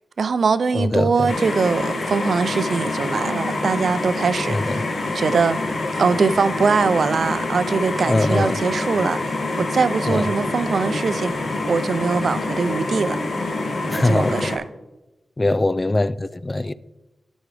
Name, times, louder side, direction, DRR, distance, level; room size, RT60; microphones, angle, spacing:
voice 1, 0.2-4.8 5.1-5.6 5.9-9.2 9.6-11.3 11.7-13.2 13.9-14.6, right 5 dB, 75° right, 0.4 m, -22 dB
voice 2, 0.7-1.3 4.5-4.8 8.1-8.6 10.1-10.2 13.9-14.5 15.4-16.7, left 2 dB, 30° left, 0.4 m, -21 dB
sound 1, 1.3-14.6, left 2 dB, 65° left, 1.9 m, -26 dB
16.5 x 6.1 x 3.3 m
wide cardioid pair, 85°, 0 cm